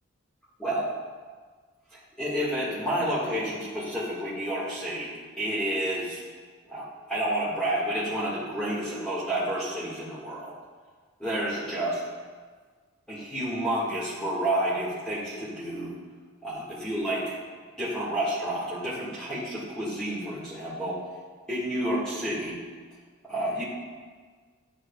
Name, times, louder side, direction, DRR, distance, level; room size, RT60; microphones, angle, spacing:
voice 1, 2.2-5.1 5.4-6.2 6.7-10.5 11.2-12.0 13.1-15.9 16.4-17.3 17.8-21.0 21.5-22.6 23.3-23.6, right 1 dB, 5° left, -10 dB, 1.8 m, -30 dB
11.0 x 7.9 x 2.4 m, 1.5 s
head